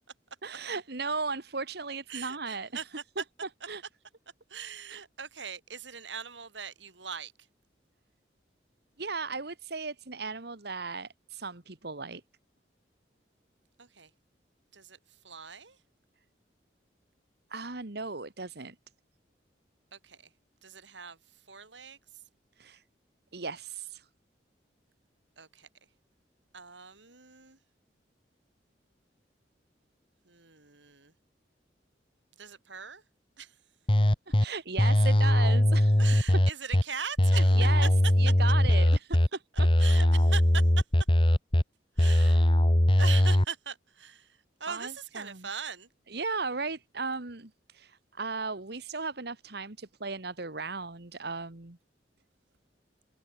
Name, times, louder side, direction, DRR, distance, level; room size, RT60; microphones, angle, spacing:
voice 1, 0.4-2.9 3.2-3.3 3.7-3.8 4.9-5.0 9.0-12.2 17.5-18.8 22.6-22.8 23.3-24.1 34.3-36.0 37.3-37.9 38.2-39.2 39.6-39.7 42.0-42.4 44.7-45.5 46.1-51.8, right 4 dB, 60° right, 1.7 m, -36 dB
voice 2, 2.1-2.8 4.5-7.3 13.8-14.1 14.7-15.0 15.2-15.8 19.9-20.2 20.6-21.2 21.5-22.0 25.4-25.7 26.5-27.6 30.3-31.1 32.4-33.0 33.4-33.5 36.0-37.5 37.8-37.9 39.8-40.6 42.0-42.4 43.0-44.3 44.6-45.9, right 7 dB, 80° right, 4.7 m, -40 dB
sound 1, 33.9-34.4 34.8-36.8 37.2-39.3 39.6-41.6 42.0-43.5, left 1 dB, 30° left, 1.6 m, -21 dB
head